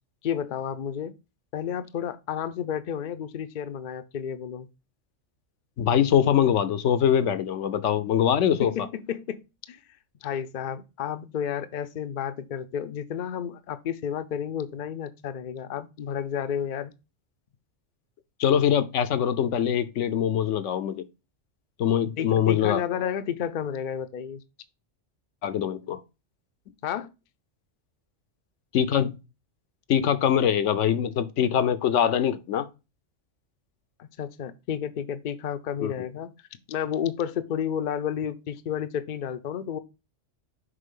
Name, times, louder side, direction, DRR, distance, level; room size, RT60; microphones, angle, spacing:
voice 1, 0.2-1.1 1.5-4.7 8.6-9.4 9.7-9.8 10.2-16.9 22.2-24.4 26.8-27.1 34.0-36.3 36.7-39.8, left 8 dB, 55° left, 0.6 m, -31 dB
voice 2, 5.8-8.7 18.4-21.0 21.8-22.8 25.4-26.0 28.7-29.2 29.9-32.7 35.8-35.9, left 9 dB, 80° left, 1.0 m, -23 dB
6.6 x 4.5 x 3.7 m
omnidirectional pair, 1.3 m